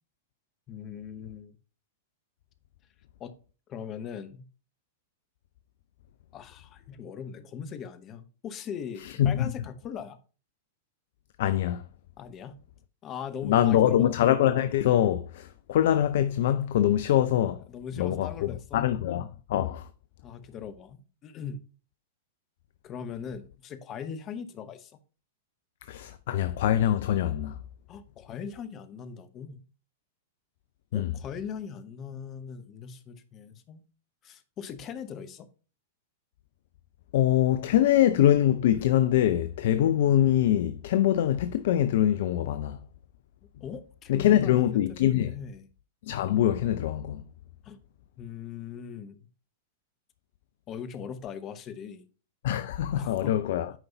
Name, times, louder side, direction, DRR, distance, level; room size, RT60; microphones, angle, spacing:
voice 1, 0.7-1.6 3.2-3.3 3.7-4.4 6.3-10.2 12.2-12.6 13.0-14.2 17.7-18.9 20.2-21.6 22.8-24.9 27.9-29.6 30.9-33.8 34.2-35.5 43.6-45.7 47.6-47.8 48.2-49.2 50.7-52.1 52.9-53.4, left 7 dB, 30° left, 0.9 m, -40 dB
voice 2, 9.2-9.5 11.4-11.8 13.4-17.6 18.0-19.9 25.9-27.6 30.9-31.1 37.1-42.8 44.1-45.3 46.1-47.2 52.4-53.7, left 11 dB, 60° left, 0.4 m, -24 dB
9.1 x 5.3 x 2.8 m
figure-of-eight pair, 100°, 0 cm